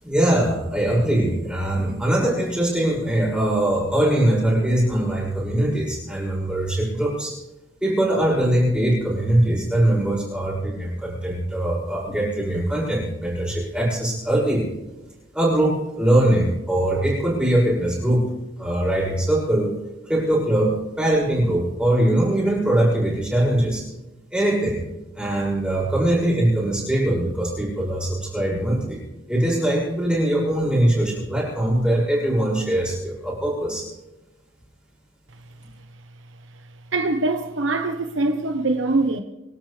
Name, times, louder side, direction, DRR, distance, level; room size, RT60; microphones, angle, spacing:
voice 1, 0.0-7.3 7.8-14.7 15.3-18.3 18.6-19.7 20.0-23.8 24.3-24.8 25.1-29.0 29.3-33.9, right 1 dB, 5° right, 6.4 m, -21 dB
voice 2, 36.9-39.2, right 2 dB, 70° right, 1.1 m, -23 dB
26.0 x 12.0 x 3.4 m
head